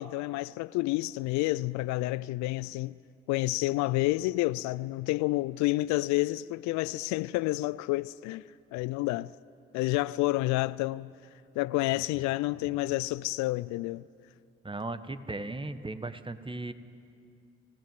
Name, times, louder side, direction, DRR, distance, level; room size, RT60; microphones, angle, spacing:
voice 1, 0.0-3.0 3.3-9.3 9.7-11.1 11.6-14.0, left 19 dB, 65° left, 0.5 m, -29 dB
voice 2, 14.6-16.7, right 2 dB, 15° right, 1.5 m, -37 dB
24.5 x 17.0 x 9.3 m
hypercardioid pair, 40°, 31 cm